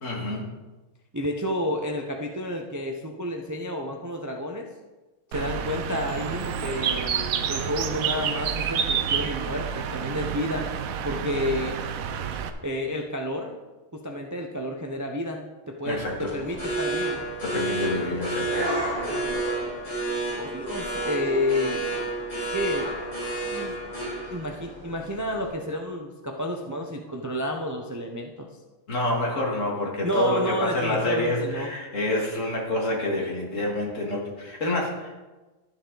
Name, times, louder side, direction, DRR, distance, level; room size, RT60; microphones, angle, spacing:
voice 1, 0.0-0.5 15.9-16.3 17.4-18.7 28.9-35.1, left 1 dB, 65° left, -1 dB, 2.2 m, -27 dB
voice 2, 1.1-4.7 5.3-10.7 11.0-11.8 12.6-13.6 13.9-17.2 20.4-21.8 22.5-23.7 24.3-28.5 30.0-31.7, left 1 dB, 20° right, 2 dB, 0.5 m, -30 dB
Bird, 5.3-12.5, right 7 dB, 80° right, 1.1 m, -29 dB
sound 1, 15.9-25.5, right 2 dB, 25° left, 3.4 m, -30 dB
12.5 x 7.1 x 3.9 m, 1.2 s
omnidirectional pair, 1.4 m